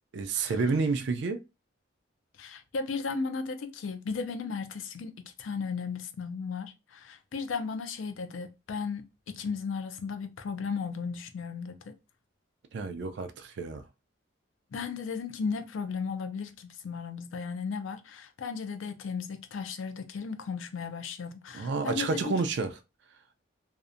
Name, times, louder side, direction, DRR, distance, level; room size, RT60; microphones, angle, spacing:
voice 1, 0.1-1.4 12.7-13.8 21.5-22.7, right 4 dB, 60° right, 0.3 m, -29 dB
voice 2, 2.4-11.9 14.7-22.4, left 5 dB, 75° left, 0.4 m, -35 dB
2.7 x 2.1 x 2.4 m
head